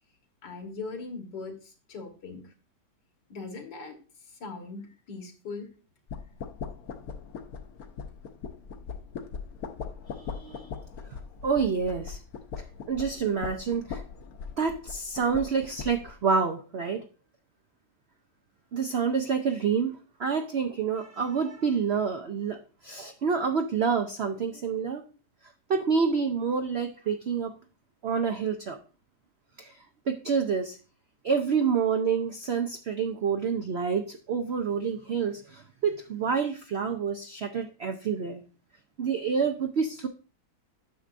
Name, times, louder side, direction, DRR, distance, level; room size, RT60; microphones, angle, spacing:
voice 1, 0.4-2.4 3.3-4.0 4.4-5.7, left 4 dB, 80° left, 3 dB, 2.1 m, -40 dB
sound 1, 6.1-16.2, left 6 dB, 65° left, 1.2 m, -40 dB
voice 2, 10.2-10.7 11.4-12.2 12.9-14.0 14.6-17.0 18.7-22.6 22.8-25.0 25.7-27.5 28.0-28.8 30.1-30.8 31.2-38.4 39.0-40.1, right 6 dB, 70° right, 5 dB, 0.6 m, -28 dB
9.5 x 6.6 x 2.5 m, 0.36 s
omnidirectional pair, 1.9 m